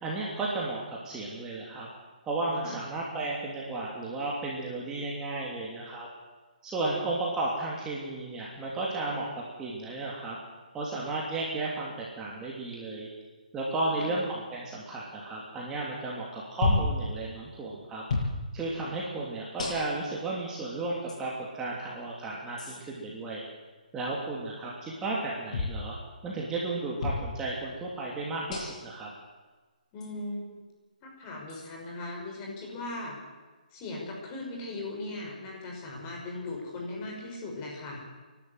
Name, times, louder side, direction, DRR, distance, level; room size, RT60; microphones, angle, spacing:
voice 1, 0.0-1.9 2.2-6.1 6.6-10.4 10.7-13.1 13.5-18.0 18.5-23.4 23.9-26.0 26.2-29.1, right 2 dB, 10° right, -4 dB, 3.0 m, -33 dB
sound 1, 16.6-17.0 18.1-18.3 19.6-20.1 21.1-21.2 22.6-22.8 25.5-25.8 27.0-27.3 28.5-28.9 30.0-30.1 31.5-31.7, left 3 dB, 50° left, 7.6 m, -30 dB
voice 2, 29.9-30.6 31.0-33.2 33.7-38.0, left 2 dB, 25° left, -1 dB, 6.0 m, -38 dB
29.5 x 12.0 x 8.1 m, 1.3 s
hypercardioid pair, 150°, 5 cm